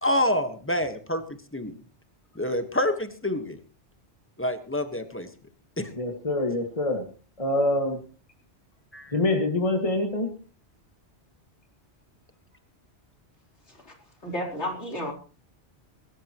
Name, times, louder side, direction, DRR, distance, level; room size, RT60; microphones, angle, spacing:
voice 1, 0.0-1.7 2.3-3.6 4.4-5.3 5.8-5.9 8.9-9.1, left 1 dB, 10° left, 8 dB, 1.4 m, -27 dB
voice 2, 5.9-7.1 7.4-8.0 9.1-10.3, left 2 dB, 30° left, 3 dB, 2.1 m, -25 dB
voice 3, 14.2-15.1, equal, 70° left, 1 dB, 4.4 m, -32 dB
22.5 x 13.5 x 3.1 m, 0.37 s
omnidirectional pair, 1.2 m